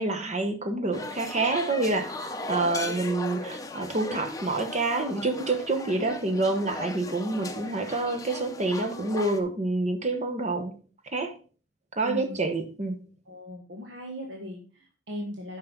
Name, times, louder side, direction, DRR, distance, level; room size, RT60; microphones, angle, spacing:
voice 1, 0.0-10.7 11.1-11.3 12.0-13.0, right 2 dB, 35° right, 1.1 m, -28 dB
sound 1, 0.9-9.4, left 2 dB, 20° left, 0.7 m, -37 dB
voice 2, 12.0-12.5 13.3-15.6, left 1 dB, 70° right, 1.4 m, -38 dB
9.5 x 5.8 x 3.8 m
head